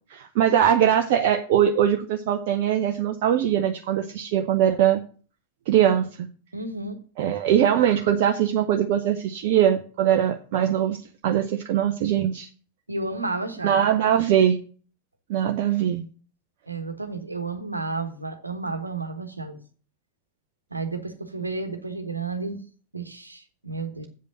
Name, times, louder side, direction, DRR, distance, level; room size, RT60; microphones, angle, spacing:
voice 1, 0.1-5.0 5.7-6.3 7.2-11.0 11.2-12.5 13.6-14.6 15.3-16.1, right 10 dB, 50° right, 4 dB, 0.8 m, -21 dB
voice 2, 6.5-7.0 12.9-13.8 16.7-19.6 20.7-22.6 22.9-24.1, right 3 dB, 85° right, 8 dB, 1.3 m, -32 dB
8.2 x 5.3 x 7.2 m, 0.40 s
figure-of-eight pair, 90°, 0 cm